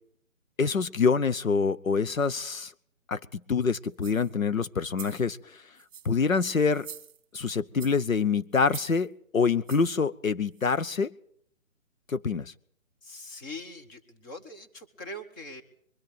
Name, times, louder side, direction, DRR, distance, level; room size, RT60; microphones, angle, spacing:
voice 1, 0.6-2.7 3.1-5.6 6.0-6.9 7.3-11.1 12.1-12.5, left 5 dB, 75° left, 13 dB, 0.9 m, -26 dB
sound 1, 3.9-4.3 4.8-5.3 5.8-6.2 6.7-7.4 7.8-8.1 8.6-9.0 9.7-10.0 10.6-10.7, right 8 dB, 25° right, 1.9 m, -45 dB
voice 2, 13.0-15.6, left 1 dB, 15° left, 4 dB, 1.2 m, -42 dB
22.5 x 14.0 x 8.8 m, 0.65 s
figure-of-eight pair, 150°, 40 cm